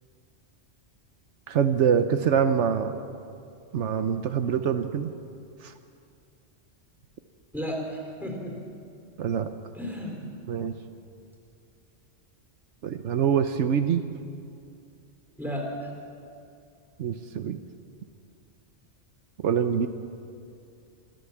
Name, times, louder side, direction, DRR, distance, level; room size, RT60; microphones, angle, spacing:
voice 1, 1.5-2.9 3.7-5.1 9.2-9.5 10.5-10.7 12.8-14.0 17.0-17.6 19.4-19.9, right 7 dB, 80° right, 9 dB, 1.1 m, -24 dB
voice 2, 7.5-8.6 9.7-10.3 15.4-15.9, equal, ahead, 0 dB, 3.8 m, -33 dB
26.5 x 13.5 x 7.3 m, 2.5 s
omnidirectional pair, 1.2 m